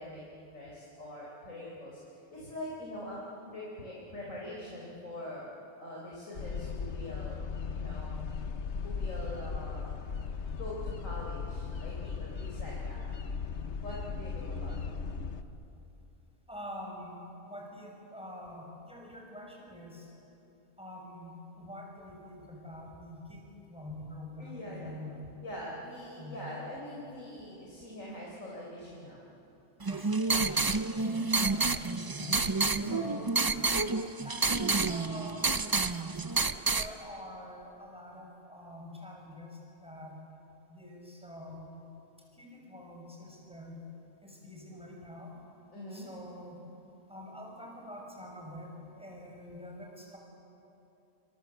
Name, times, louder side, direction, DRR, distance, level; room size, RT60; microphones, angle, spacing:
voice 1, 0.0-2.0 2.3-3.2 3.5-5.5 5.8-7.4 7.7-8.1 8.8-9.9 10.6-13.0 13.8-15.0 24.4-25.1 25.4-29.3 32.8-33.3 45.7-46.1, left 1 dB, 80° left, -5 dB, 4.8 m, -43 dB
sound 1, 6.4-15.4, left 5 dB, 60° left, 1.3 m, -37 dB
voice 2, 16.5-20.1 20.8-25.3 26.2-26.5 29.8-32.5 32.8-33.4 34.2-35.7 36.5-40.2 40.7-41.8 42.4-43.8 44.2-45.4 45.9-46.6 47.1-50.2, left 1 dB, 5° right, -1 dB, 6.2 m, -46 dB
sound 2, 29.8-36.9, right 3 dB, 25° right, 0.5 m, -29 dB
28.5 x 25.5 x 8.1 m, 2.9 s
omnidirectional pair, 1.3 m